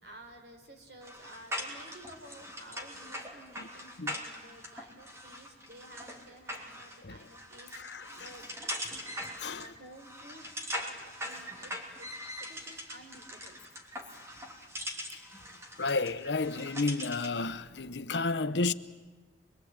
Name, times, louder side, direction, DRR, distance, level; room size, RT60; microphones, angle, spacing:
voice 1, 0.0-8.5 9.4-12.1 12.4-13.6, right 1 dB, 65° right, 4.0 m, -53 dB
sound 1, 1.0-17.4, equal, 15° right, 2.9 m, -42 dB
voice 2, 7.7-8.3 9.4-9.7 15.1-15.2 15.8-18.7, left 3 dB, 80° left, 0.9 m, -32 dB
25.5 x 22.5 x 8.9 m
head